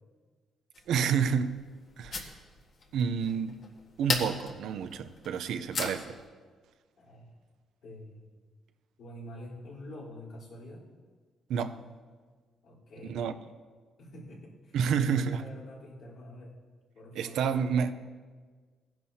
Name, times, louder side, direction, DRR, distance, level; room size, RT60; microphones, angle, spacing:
sound 1, 0.7-6.3, left 3 dB, 55° left, 1.6 m, -38 dB
voice 1, 0.9-1.6 2.0-2.2 2.9-3.6 4.0-6.2 11.5-11.8 13.1-13.3 14.7-15.4 17.2-17.9, right 7 dB, 80° right, 0.6 m, -29 dB
voice 2, 7.0-7.3 7.8-8.3 9.0-10.9 12.6-13.3 14.0-16.5 16.9-17.7, left 1 dB, 75° left, 3.8 m, -47 dB
17.0 x 10.5 x 2.8 m
cardioid pair, 90°, 0 cm